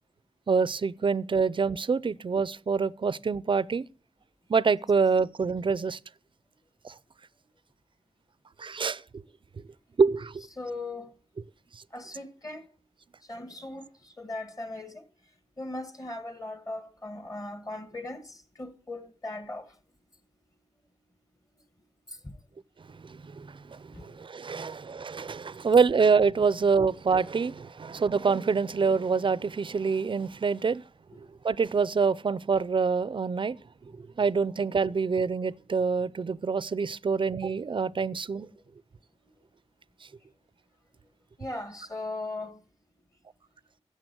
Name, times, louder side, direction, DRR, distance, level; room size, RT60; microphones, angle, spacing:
voice 1, 0.5-3.9 4.5-6.0 6.8-6.9 8.6-9.0 10.0-10.4 22.9-30.8 31.4-33.6 34.0-38.5, right 5 dB, 45° right, 0.5 m, -26 dB
voice 2, 10.6-11.1 11.9-12.6 13.3-15.0 15.6-19.7 22.1-22.3 23.9-24.1 41.4-42.6, left 2 dB, 30° left, 1.8 m, -38 dB
15.5 x 6.9 x 6.1 m
wide cardioid pair, 105°, 12 cm